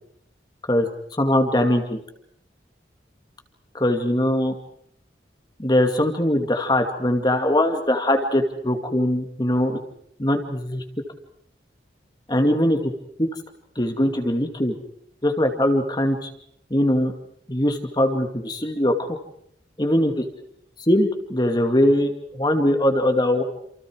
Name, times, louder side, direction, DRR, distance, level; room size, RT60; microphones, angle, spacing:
voice 1, 1.2-2.0 3.7-4.5 5.6-9.8 10.2-10.8 12.3-12.9 13.2-13.3 13.8-14.7 15.2-16.3 16.7-17.1 17.5-18.9 19.8-20.2 20.8-23.4, left 1 dB, 25° left, 5 dB, 2.4 m, -21 dB
29.0 x 28.0 x 4.8 m, 0.70 s
head